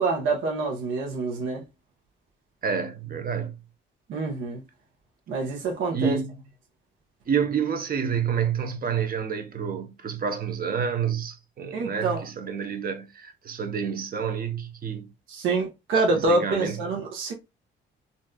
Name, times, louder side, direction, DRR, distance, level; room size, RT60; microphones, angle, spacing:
voice 1, 0.0-1.6 4.1-4.6 5.3-6.2 11.7-12.2 15.3-17.3, right 3 dB, 80° right, 1.1 m, -26 dB
voice 2, 2.6-3.6 5.9-6.3 7.3-15.1 16.3-16.8, right 7 dB, 45° right, 0.8 m, -28 dB
4.0 x 2.6 x 2.3 m
cardioid pair, 90°, 20 cm